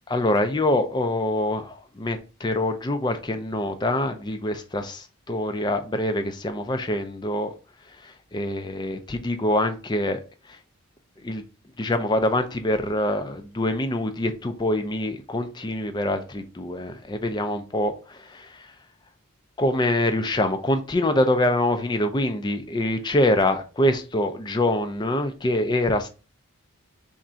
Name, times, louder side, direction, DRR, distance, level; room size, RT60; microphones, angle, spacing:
voice 1, 0.1-7.5 8.0-10.2 10.5-10.6 11.2-11.4 11.8-18.7 19.6-26.1, left 1 dB, 20° left, 0.4 m, -25 dB
3.5 x 2.5 x 4.2 m
head